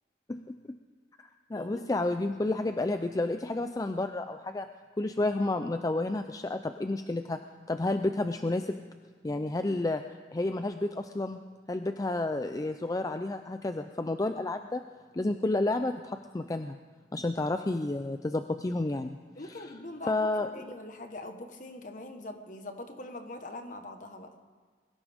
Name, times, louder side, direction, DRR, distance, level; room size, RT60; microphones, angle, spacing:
voice 1, 0.3-0.8 1.5-4.7 5.0-7.4 7.7-8.8 9.2-10.0 10.3-11.4 11.7-14.8 15.1-16.8 17.1-19.2 20.1-20.5, left 2 dB, 20° left, 8 dB, 0.4 m, -30 dB
voice 2, 1.5-1.9 9.2-9.5 19.4-24.3, left 2 dB, 45° left, 6 dB, 1.3 m, -43 dB
22.0 x 16.5 x 3.6 m, 1.5 s
head